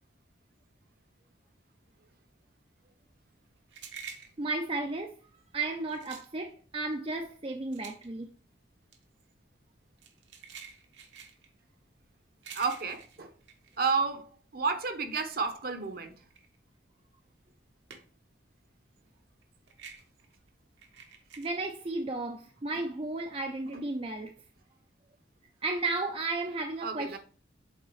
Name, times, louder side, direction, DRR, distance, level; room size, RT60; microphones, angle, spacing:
sound 1, 3.0-14.6 14.9-18.4 18.6-21.5, right 6 dB, 75° right, 1.1 m, -50 dB
voice 1, 4.4-5.1 5.5-8.3 21.4-24.3 25.6-27.2, right 2 dB, 30° right, 0.4 m, -33 dB
voice 2, 12.5-13.3 13.8-14.3 14.5-16.1 23.7-23.8 26.8-27.2, right 4 dB, 55° right, 0.9 m, -31 dB
8.0 x 4.0 x 3.1 m
head